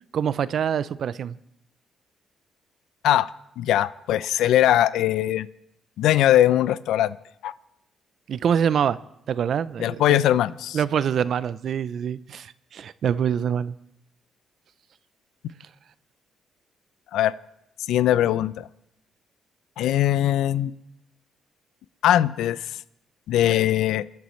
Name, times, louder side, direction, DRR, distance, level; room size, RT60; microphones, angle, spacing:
voice 1, 0.1-1.4 8.3-9.0 9.3-9.9 10.7-13.7, right 8 dB, 60° right, 17 dB, 0.5 m, -25 dB
voice 2, 3.6-5.5 6.0-7.2 7.4-7.5 9.8-10.8 17.1-17.3 17.9-18.7 19.8-20.7 22.0-22.8 23.3-24.0, left 12 dB, 85° left, 17 dB, 0.5 m, -21 dB
29.5 x 10.5 x 3.2 m, 0.81 s
cardioid pair, 90°, 0 cm